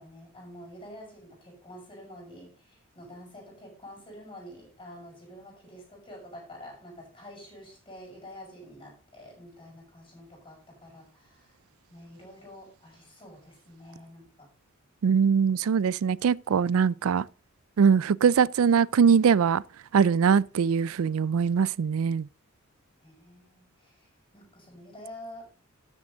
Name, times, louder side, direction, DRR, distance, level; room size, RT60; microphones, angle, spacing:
voice 1, 0.0-11.5 11.9-14.5 23.0-25.6, left 1 dB, 25° left, 6.7 m, -48 dB
voice 2, 15.0-17.3 17.8-19.6 19.9-22.3, right 6 dB, 80° right, 0.4 m, -22 dB
12.5 x 7.3 x 3.9 m
head